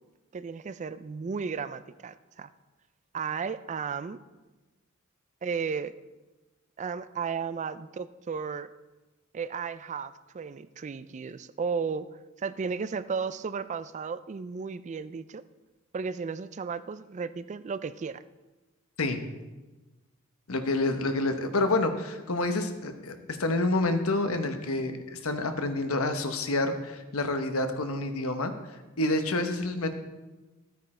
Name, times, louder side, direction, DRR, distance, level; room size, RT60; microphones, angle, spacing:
voice 1, 0.3-2.5 3.1-4.2 5.4-5.9 6.8-8.7 9.3-12.1 12.4-15.4 15.9-18.2, right 5 dB, 35° right, 14 dB, 0.3 m, -34 dB
voice 2, 20.5-28.5 29.0-29.9, left 2 dB, 75° left, 7 dB, 1.0 m, -28 dB
13.0 x 9.2 x 4.3 m, 1.2 s
head